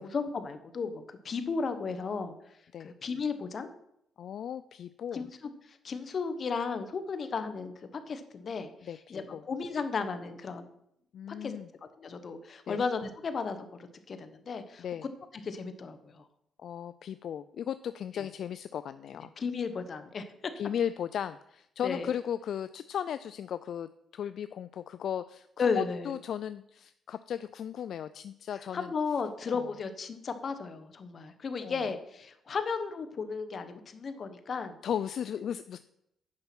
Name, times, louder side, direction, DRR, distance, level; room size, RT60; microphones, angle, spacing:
voice 1, 0.0-2.3 2.8-3.7 5.1-5.3 5.8-8.7 9.1-10.7 11.3-11.5 12.0-14.8 15.4-16.2 18.1-18.2 19.4-20.3 21.8-22.1 25.6-26.1 28.7-34.7, left 5 dB, 45° left, 9 dB, 1.0 m, -34 dB
voice 2, 4.2-5.3 8.8-9.4 11.1-11.7 12.7-12.8 14.8-15.1 16.6-19.3 20.6-28.9 29.5-29.7 31.6-31.9 34.8-35.8, left 9 dB, 65° left, 13 dB, 0.3 m, -36 dB
8.7 x 5.8 x 6.0 m, 0.76 s
cardioid pair, 110°, 0 cm